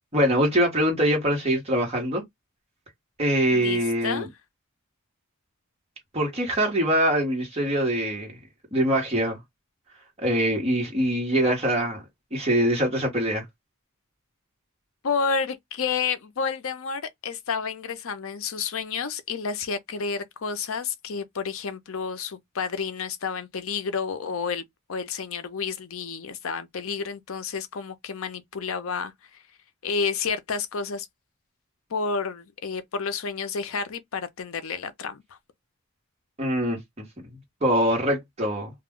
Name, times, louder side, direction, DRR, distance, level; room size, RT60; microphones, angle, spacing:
voice 1, 0.1-2.2 3.2-4.3 6.1-8.3 8.7-9.4 10.2-12.0 12.3-13.4 36.4-36.8 37.6-38.7, right 1 dB, 30° right, 1.1 m, -23 dB
voice 2, 3.5-4.3 15.0-24.6 24.9-29.4 29.8-31.1 31.9-35.2, left 5 dB, 70° left, 0.6 m, -30 dB
2.3 x 2.2 x 3.5 m
head